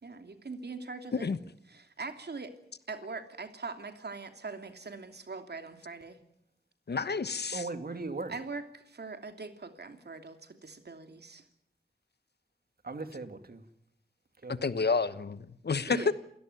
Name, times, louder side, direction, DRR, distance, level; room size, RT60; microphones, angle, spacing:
voice 1, 0.0-1.3 1.7-2.5 2.9-6.2 8.3-11.4 15.9-16.1, right 4 dB, 80° right, 2.9 m, -42 dB
voice 2, 6.9-7.6 14.6-16.0, left 4 dB, 85° left, 1.2 m, -30 dB
voice 3, 7.5-8.3 12.8-13.6 14.4-14.7, right 3 dB, 65° right, 2.6 m, -38 dB
29.0 x 17.0 x 9.5 m
wide cardioid pair, 60°, 17 cm